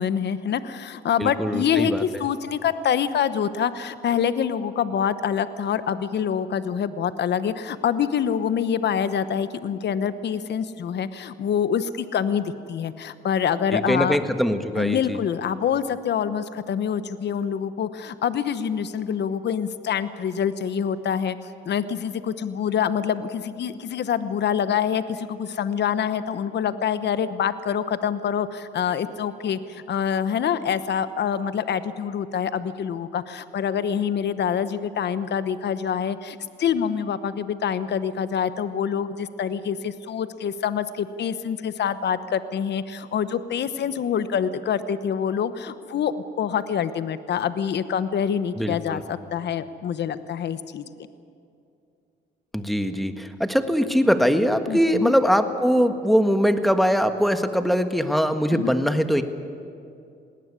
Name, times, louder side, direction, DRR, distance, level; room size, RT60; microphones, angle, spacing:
voice 1, 0.0-14.2 14.8-50.8 54.7-55.1 58.5-58.7, left 8 dB, 60° left, 13 dB, 1.1 m, -26 dB
voice 2, 1.2-2.0 13.7-15.2 48.6-49.0 52.5-59.2, equal, ahead, 8 dB, 1.5 m, -22 dB
19.5 x 18.0 x 9.8 m, 2.5 s
cardioid pair, 90°, 20 cm